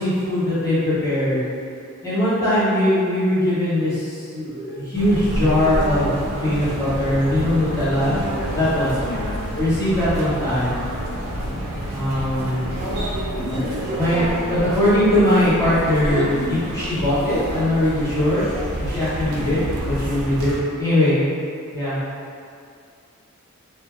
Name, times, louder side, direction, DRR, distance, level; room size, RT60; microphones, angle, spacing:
voice 1, 0.0-1.4 2.0-6.1 6.4-8.2 8.5-9.0 9.5-10.8 11.9-12.6 13.5-14.2 14.5-18.5 18.8-21.2 21.7-22.0, left 1 dB, 15° left, -15 dB, 1.0 m, -21 dB
sound 1, 4.9-20.6, right 1 dB, 75° right, 0.4 m, -29 dB
voice 2, 9.0-9.5 13.3-13.7 14.1-14.5 16.0-16.6 19.3-19.6, left 1 dB, 65° left, -10 dB, 0.7 m, -30 dB
2.2 x 2.1 x 3.0 m, 2.4 s
head